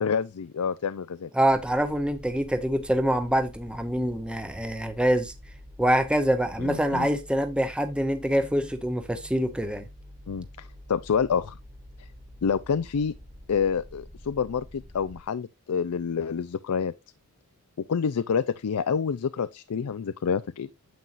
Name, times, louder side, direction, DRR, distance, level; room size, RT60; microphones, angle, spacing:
voice 1, 0.0-1.3 6.6-7.1 10.3-11.6 12.0-12.1 12.4-13.1 13.5-16.9 17.9-20.7, left 6 dB, 85° left, 0.4 m, -28 dB
voice 2, 1.3-5.3 5.8-9.8, right 1 dB, 5° right, 0.7 m, -25 dB
sound 1, 1.5-15.2, left 1 dB, 25° right, 1.6 m, -47 dB
9.4 x 7.6 x 2.5 m
head